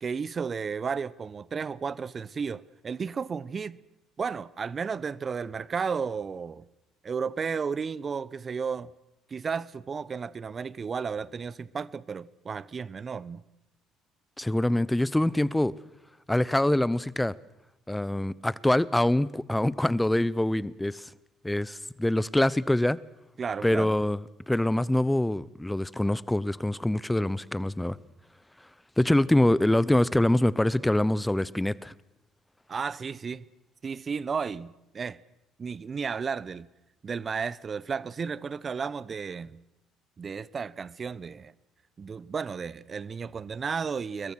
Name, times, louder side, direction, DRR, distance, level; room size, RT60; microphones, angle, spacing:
voice 1, 0.0-3.8 4.2-6.6 7.0-8.9 9.3-13.4 23.4-23.9 32.7-33.4 33.8-35.2 35.6-36.7 37.0-39.6 40.2-41.5 42.0-44.3, right 5 dB, 40° right, 0.9 m, -33 dB
voice 2, 14.4-15.7 16.3-17.3 17.9-21.1 21.4-23.0 23.6-28.0 29.0-31.9, left 1 dB, 10° left, 0.9 m, -25 dB
27.5 x 22.5 x 6.4 m
hypercardioid pair, 55°, 0 cm